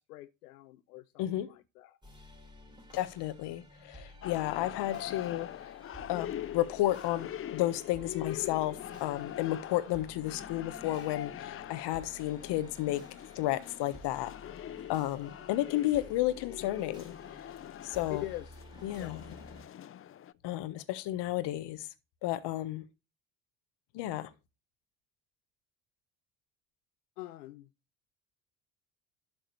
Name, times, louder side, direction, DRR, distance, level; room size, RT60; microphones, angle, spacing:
voice 1, 0.0-2.0 18.1-18.6 18.9-19.2 27.2-27.7, left 16 dB, 90° left, 0.7 m, -44 dB
sound 1, 2.0-19.6, left 1 dB, 10° right, 3.7 m, -53 dB
voice 2, 2.9-5.7 6.1-13.0 13.3-17.5 17.8-18.2 18.8-19.2 20.4-21.9 22.2-22.8 23.9-24.3, left 15 dB, 65° left, 1.3 m, -32 dB
sound 2, 4.2-20.3, left 11 dB, 30° left, 0.5 m, -43 dB
11.5 x 6.4 x 3.2 m
hypercardioid pair, 65°, 45 cm